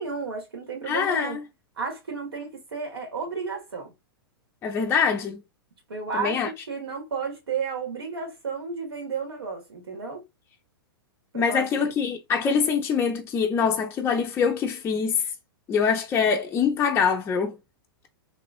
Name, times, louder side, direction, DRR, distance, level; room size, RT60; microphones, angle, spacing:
voice 1, 0.0-1.4 1.8-3.9 5.9-10.2 11.3-11.9, right 5 dB, 85° right, 1.4 m, -33 dB
voice 2, 0.9-1.4 4.6-5.4 6.1-6.5 11.3-15.2 15.7-17.6, left 6 dB, 20° left, 0.4 m, -24 dB
3.0 x 2.3 x 2.4 m
hypercardioid pair, 115°, 13 cm